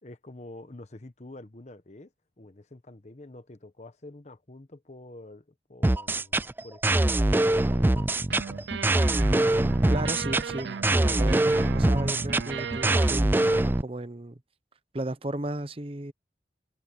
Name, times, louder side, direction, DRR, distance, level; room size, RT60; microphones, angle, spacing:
voice 1, 0.0-2.1 2.4-5.4 5.7-8.1, left 2 dB, 40° left, 1.1 m, -47 dB
sound 1, 5.8-13.8, right 2 dB, 10° right, 0.3 m, -23 dB
sound 2, 8.2-13.2, right 5 dB, 75° right, 0.5 m, -36 dB
voice 2, 9.9-14.4 14.9-16.1, right 1 dB, 30° right, 1.0 m, -35 dB
head